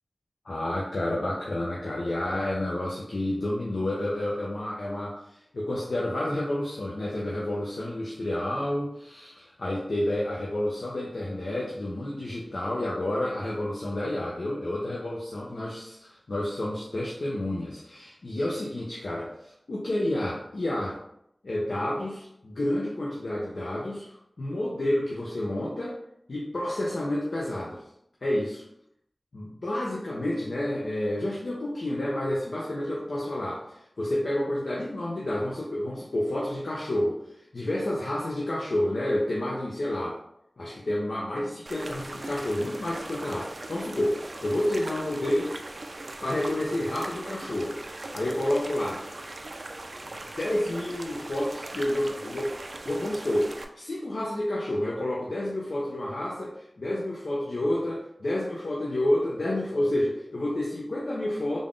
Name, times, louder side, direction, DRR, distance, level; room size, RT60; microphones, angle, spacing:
voice 1, 0.4-5.2 5.5-21.0 21.4-26.0 26.3-27.8 28.2-28.6 29.3-37.2 37.5-40.2 40.6-45.6 46.2-49.0 50.0-52.5 52.9-61.6, left 1 dB, 85° left, -4 dB, 0.6 m, -30 dB
sound 1, 41.6-53.6, right 2 dB, 65° right, 0.4 m, -40 dB
3.5 x 2.5 x 3.6 m, 0.76 s
wide cardioid pair, 55°, 0 cm